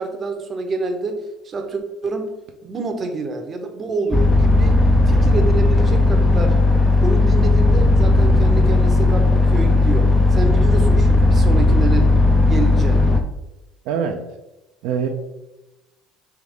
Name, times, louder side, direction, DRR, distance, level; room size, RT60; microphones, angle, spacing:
voice 1, 0.0-2.4 2.6-6.6 7.0-12.1 12.4-13.1, right 3 dB, 35° right, 5 dB, 0.6 m, -27 dB
sound 1, 4.1-13.2, left 2 dB, 10° left, 0.4 m, -15 dB
voice 2, 13.9-14.2 14.8-15.1, right 7 dB, 75° right, 4 dB, 0.4 m, -23 dB
3.4 x 3.1 x 3.6 m, 0.98 s
supercardioid pair, 110°, 0 cm